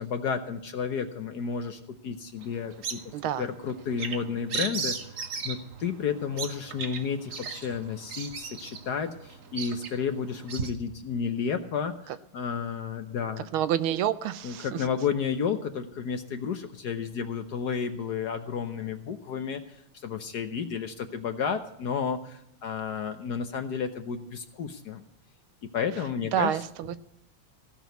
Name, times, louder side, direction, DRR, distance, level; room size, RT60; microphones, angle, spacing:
voice 1, 0.0-3.0 3.4-5.2 5.4-13.5 14.4-25.0 25.7-26.6, left 6 dB, 60° left, 8 dB, 1.2 m, -32 dB
Bird vocalization bird call bird song, 2.4-10.7, right 5 dB, 45° right, 1.1 m, -37 dB
voice 2, 3.1-3.4 13.5-14.8 26.3-27.0, right 10 dB, 75° right, 13 dB, 1.5 m, -28 dB
16.5 x 6.2 x 9.2 m, 0.83 s
omnidirectional pair, 2.4 m